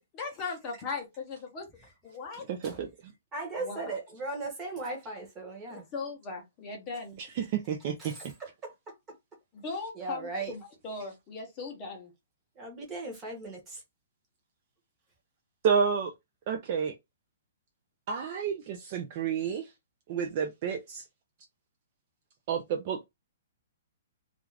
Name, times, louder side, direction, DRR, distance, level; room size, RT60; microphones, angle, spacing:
voice 1, 0.0-1.7 2.0-2.4 3.6-3.8 5.7-7.2 9.5-12.1, left 4 dB, 20° left, 0.7 m, -38 dB
voice 2, 2.5-3.1 7.2-8.1 15.6-16.1 16.5-17.0 18.1-19.7 20.1-21.0 22.5-23.0, right 7 dB, 30° right, 0.4 m, -30 dB
voice 3, 3.3-5.9 8.0-8.3 8.6-8.7 10.0-10.5 12.6-13.8, right 3 dB, 10° right, 0.8 m, -37 dB
2.4 x 2.3 x 3.1 m
hypercardioid pair, 180°, 0 cm